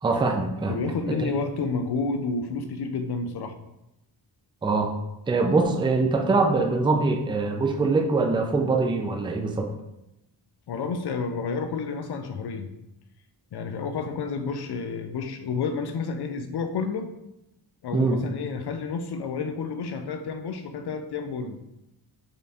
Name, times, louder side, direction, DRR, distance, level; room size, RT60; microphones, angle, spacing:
voice 1, 0.0-0.7 1.1-1.2 4.6-4.9 5.3-9.7 17.9-18.2, right 3 dB, 10° right, 4 dB, 0.4 m, -23 dB
voice 2, 0.7-3.6 10.7-12.7 13.5-17.1 17.8-21.6, left 4 dB, 55° left, 6 dB, 0.6 m, -30 dB
5.1 x 2.2 x 2.6 m, 0.88 s
cardioid pair, 50°, 48 cm